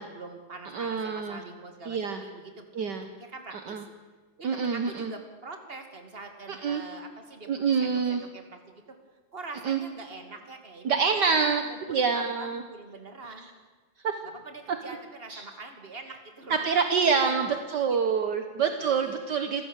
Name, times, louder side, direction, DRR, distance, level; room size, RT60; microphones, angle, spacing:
voice 1, 0.0-2.9 3.2-3.8 4.4-8.6 8.9-9.0 9.3-10.9 11.2-13.5 14.3-16.7 17.0-18.3 18.9-19.2, right 3 dB, 30° right, 5 dB, 2.6 m, -44 dB
voice 2, 0.7-1.4 1.9-2.2 2.7-3.1 3.7-3.8 4.4-5.1 6.5-6.8 7.5-8.2 9.6-9.8 10.8-11.6 11.9-12.6 13.4-13.5 14.0-14.2 15.3-15.4 16.6-19.7, right 5 dB, 60° right, 7 dB, 1.8 m, -26 dB
26.5 x 14.5 x 8.2 m, 1.3 s
omnidirectional pair, 2.1 m